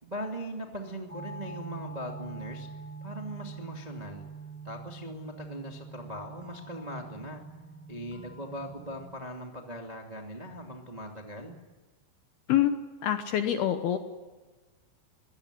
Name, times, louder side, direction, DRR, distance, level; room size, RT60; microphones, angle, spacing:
voice 1, 0.0-2.7 3.0-4.3 4.6-7.4 7.9-11.6, equal, 70° right, 1 dB, 0.4 m, -40 dB
sound 1, 1.1-9.0, right 4 dB, 15° left, 0.4 m, -44 dB
voice 2, 13.0-14.0, left 11 dB, 75° left, 8 dB, 2.4 m, -25 dB
23.5 x 18.0 x 10.0 m, 1.3 s
omnidirectional pair, 5.7 m